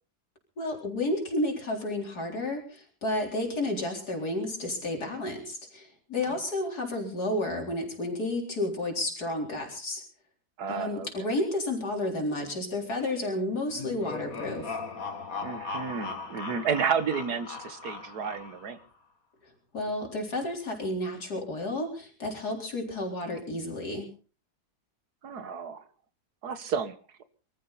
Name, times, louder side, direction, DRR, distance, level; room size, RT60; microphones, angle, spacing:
voice 1, 0.6-10.0 10.7-14.8 19.7-24.1, left 1 dB, 85° left, 1 dB, 4.6 m, -31 dB
voice 2, 10.6-11.1 15.4-18.8 25.2-25.8 26.4-26.9, right 6 dB, 80° right, 11 dB, 2.0 m, -31 dB
sound 1, 13.7-18.8, left 4 dB, 60° left, 2.3 m, -38 dB
24.0 x 14.0 x 4.1 m, 0.39 s
omnidirectional pair, 1.6 m